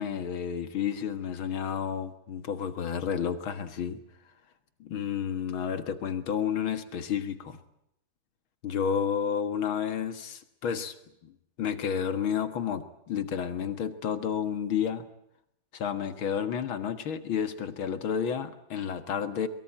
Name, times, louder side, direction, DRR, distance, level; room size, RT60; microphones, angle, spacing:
voice 1, 0.0-4.0 4.8-7.6 8.6-10.9 11.2-11.3 11.6-15.1 15.7-19.5, left 8 dB, 85° left, 11 dB, 2.5 m, -31 dB
23.0 x 23.0 x 8.8 m, 0.80 s
omnidirectional pair, 2.2 m